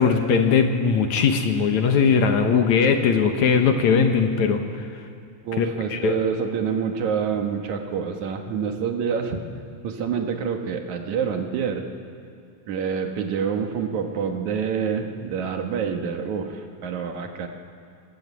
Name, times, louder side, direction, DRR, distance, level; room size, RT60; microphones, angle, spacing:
voice 1, 0.0-4.6 5.6-6.2, left 6 dB, 65° left, 6 dB, 2.5 m, -20 dB
voice 2, 5.4-9.4 9.8-11.9 12.7-17.5, right 6 dB, 65° right, 4 dB, 2.7 m, -27 dB
21.0 x 20.5 x 8.3 m, 2.4 s
omnidirectional pair, 3.7 m